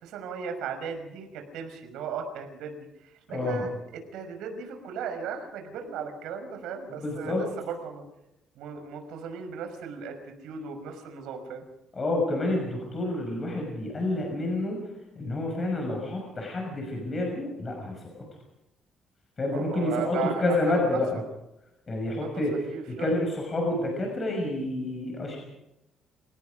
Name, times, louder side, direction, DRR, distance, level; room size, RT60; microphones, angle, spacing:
voice 1, 0.0-8.0 8.6-11.6 19.5-21.2 22.1-22.3 22.7-23.1, right 6 dB, 90° right, 6 dB, 5.8 m, -36 dB
voice 2, 3.3-3.7 7.0-7.5 11.9-14.8 15.2-18.2 19.4-21.2 21.9-22.5 22.9-25.4, left 2 dB, 25° left, 1 dB, 6.1 m, -29 dB
28.5 x 18.0 x 5.1 m, 0.90 s
cardioid pair, 150°, 0 cm